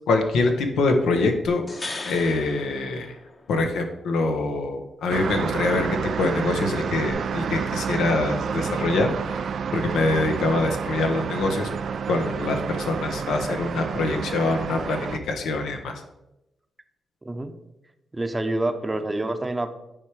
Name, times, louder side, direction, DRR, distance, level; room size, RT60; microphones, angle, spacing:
voice 1, 0.1-1.6 2.0-3.1 3.5-9.4 9.7-11.7 12.1-15.9, left 3 dB, 90° left, 5 dB, 0.9 m, -24 dB
sound 1, 1.5-3.7 7.1-7.2, left 2 dB, 45° left, 1.1 m, -37 dB
sound 2, 5.1-15.2, right 6 dB, 70° right, 0.3 m, -29 dB
voice 2, 17.2-17.5 18.1-19.7, right 2 dB, 25° right, 8 dB, 0.7 m, -27 dB
8.9 x 3.4 x 4.7 m, 0.91 s
cardioid pair, 60°, 0 cm